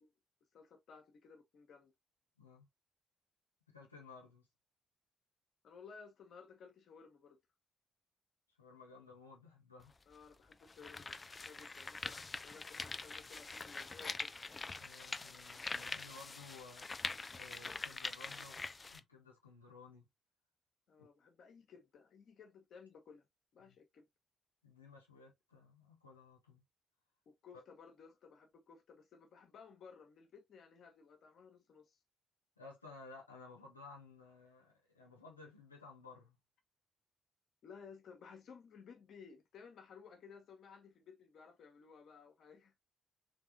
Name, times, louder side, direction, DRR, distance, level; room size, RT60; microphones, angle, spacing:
voice 1, 0.5-1.9 5.6-7.4 10.1-14.3 20.9-23.3 23.5-24.0 27.3-32.0 37.6-42.7, left 5 dB, 55° left, 1.0 m, -57 dB
voice 2, 2.4-2.7 3.7-4.5 8.5-9.9 14.8-16.9 17.3-18.6 18.9-20.1 21.0-21.1 23.6-23.8 24.6-26.6 32.6-36.4, left 3 dB, 90° left, 0.7 m, -56 dB
sound 1, 9.8-9.9 10.5-19.0, left 3 dB, 30° left, 0.4 m, -44 dB
3.5 x 3.4 x 2.6 m
figure-of-eight pair, 40°, 0 cm